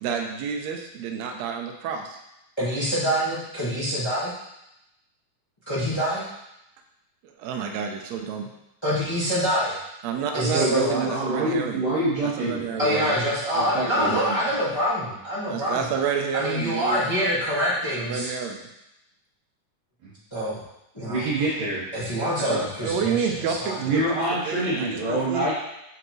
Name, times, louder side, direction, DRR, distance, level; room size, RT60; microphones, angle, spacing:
voice 1, 0.0-2.2 7.4-8.5 10.0-11.8 12.4-12.9 13.9-14.4 15.5-17.0 18.0-18.6 21.4-21.5 22.5-25.5, right 6 dB, 80° right, 3 dB, 1.6 m, -29 dB
voice 2, 2.6-4.3 5.7-6.2 8.8-9.8 10.3-11.1 12.8-16.1 16.3-18.3 20.3-20.6 20.9-21.2 21.9-23.8, equal, 40° left, -10 dB, 0.3 m, -25 dB
voice 3, 10.5-13.1 13.5-14.1 20.0-20.1 21.1-21.8 23.8-25.5, right 2 dB, 55° right, -13 dB, 3.0 m, -26 dB
7.9 x 4.0 x 3.1 m, 0.86 s
omnidirectional pair, 3.7 m